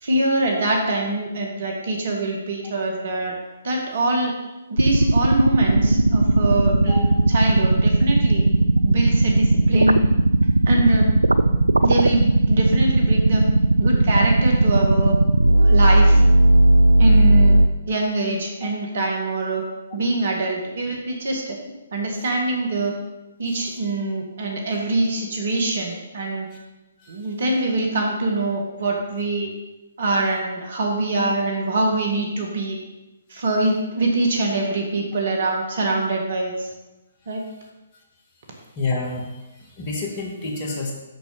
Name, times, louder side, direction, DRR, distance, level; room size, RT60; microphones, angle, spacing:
voice 1, 0.0-3.4 3.6-4.3 4.7-8.4 8.8-10.0 10.6-11.1 11.8-13.4 13.8-15.1 15.6-16.2 17.0-17.6 17.9-19.6 19.9-21.6 21.9-22.9 23.4-26.5 27.1-29.5 30.0-32.8 33.3-36.7 37.3-37.4, right 2 dB, 55° right, 0 dB, 1.8 m, -24 dB
sound 1, 4.8-17.7, right 2 dB, 80° right, 0.3 m, -16 dB
voice 2, 23.5-23.8 26.5-26.6 27.0-27.1 38.8-40.9, left 3 dB, 30° left, -1 dB, 1.8 m, -29 dB
6.3 x 6.3 x 5.5 m, 1.0 s
figure-of-eight pair, 130°, 0 cm